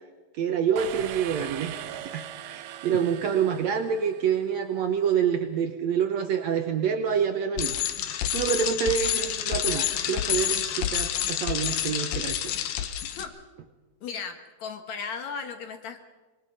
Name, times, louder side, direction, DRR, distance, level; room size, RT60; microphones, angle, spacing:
voice 1, 0.4-12.6, right 7 dB, 70° right, 7 dB, 1.7 m, -27 dB
sound 1, 0.8-4.5, right 11 dB, 90° right, 2.7 m, -40 dB
Bicycle, 7.6-13.2, left 10 dB, 85° left, 2.9 m, -28 dB
voice 2, 14.0-16.1, left 6 dB, 60° left, 7 dB, 2.3 m, -36 dB
26.5 x 21.0 x 5.4 m, 1.3 s
omnidirectional pair, 4.0 m